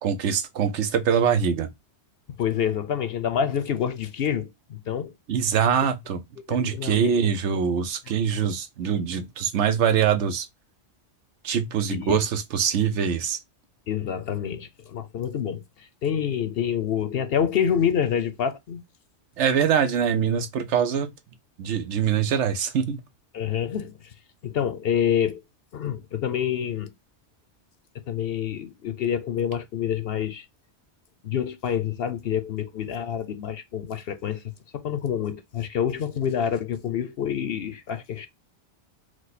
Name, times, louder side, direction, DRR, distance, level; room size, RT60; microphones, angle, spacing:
voice 1, 0.0-1.7 5.3-6.2 6.5-10.5 11.4-13.4 19.4-21.1 21.6-23.0, right 7 dB, 75° right, 1.0 m, -23 dB
voice 2, 2.4-5.1 6.5-7.3 8.4-8.5 11.9-12.2 13.9-18.8 23.3-24.0 24.4-25.4 25.7-26.9 28.1-30.4 31.2-34.4 34.7-38.3, left 8 dB, 60° left, 0.8 m, -27 dB
4.8 x 2.2 x 4.0 m
omnidirectional pair, 1.2 m